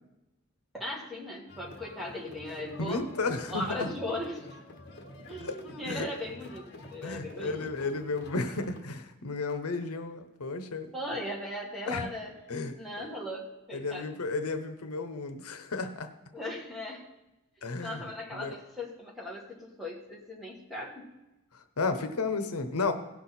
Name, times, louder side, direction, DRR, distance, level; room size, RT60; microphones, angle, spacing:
voice 1, 0.7-3.1 3.5-4.4 5.3-7.5 10.9-12.3 12.8-14.1 16.3-17.1 17.8-21.1, left 1 dB, ahead, -5 dB, 1.8 m, -38 dB
sound 1, 1.5-8.8, left 1 dB, 50° left, 1.2 m, -48 dB
voice 2, 2.8-3.9 5.4-6.1 7.0-11.2 11.9-12.1 12.5-13.1 13.7-16.1 17.6-18.0 18.3-18.5 21.5-22.9, left 3 dB, 85° left, 9 dB, 0.9 m, -33 dB
17.0 x 6.2 x 4.2 m, 0.97 s
head